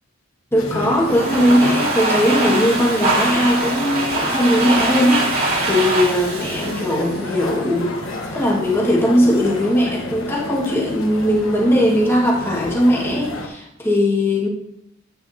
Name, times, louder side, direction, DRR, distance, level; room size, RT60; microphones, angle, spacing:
voice 1, 0.5-14.5, equal, 10° left, -3 dB, 1.8 m, -19 dB
sound 1, 0.6-13.5, left 2 dB, 65° left, 1.2 m, -31 dB
Domestic sounds home sounds, 0.8-7.7, right 2 dB, 45° right, 2.6 m, -23 dB
10.0 x 8.5 x 2.8 m, 0.79 s
head